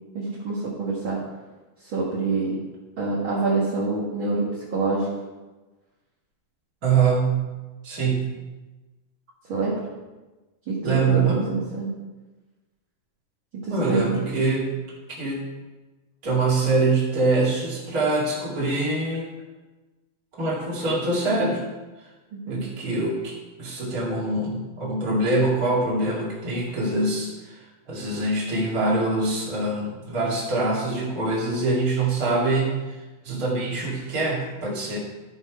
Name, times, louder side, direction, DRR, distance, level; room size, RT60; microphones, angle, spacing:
voice 1, 0.1-1.2 1.8-2.6 3.0-5.1 9.5-9.8 10.7-11.9 13.6-14.2 22.3-22.6, right 3 dB, 50° right, -7 dB, 1.6 m, -26 dB
voice 2, 6.8-7.4 7.8-8.3 10.8-11.5 13.7-14.7 15.2-15.5 16.2-19.3 20.4-21.6 22.5-32.8 33.2-35.0, right 3 dB, 30° right, -5 dB, 2.0 m, -24 dB
12.5 x 5.4 x 4.7 m, 1.2 s
omnidirectional pair, 4.3 m